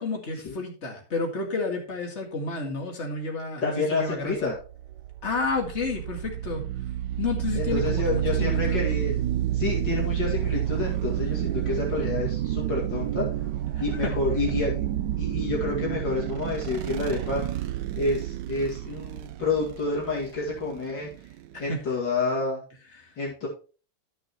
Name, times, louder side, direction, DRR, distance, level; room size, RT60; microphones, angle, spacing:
voice 1, 0.0-4.5 5.2-6.6 7.2-8.8 14.0-14.1 21.5-21.8 23.0-23.1, left 3 dB, 35° left, 2 dB, 2.1 m, -30 dB
voice 2, 3.6-4.6 7.5-9.2 9.5-13.3 13.8-14.8 15.2-17.4 18.0-21.1 21.6-22.6 23.2-23.5, left 3 dB, 55° left, -3 dB, 2.8 m, -29 dB
sound 1, 4.4-21.8, right 12 dB, 75° right, 1.0 m, -30 dB
13.5 x 6.3 x 3.0 m, 0.36 s
omnidirectional pair, 2.4 m